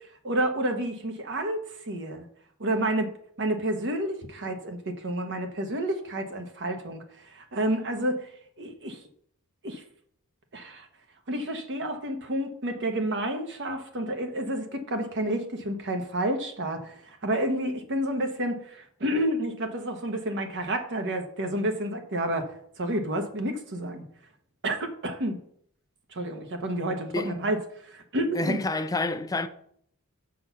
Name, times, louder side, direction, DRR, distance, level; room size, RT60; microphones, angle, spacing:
voice 1, 0.2-1.6 1.9-2.2 2.6-3.1 3.4-8.3 8.6-9.0 9.6-9.8 10.5-10.9 11.3-24.0 24.6-25.4 26.1-28.6, right 1 dB, 55° right, 1.1 m, -30 dB
voice 2, 28.4-29.5, left 2 dB, 15° left, 0.5 m, -28 dB
6.3 x 6.0 x 5.7 m
head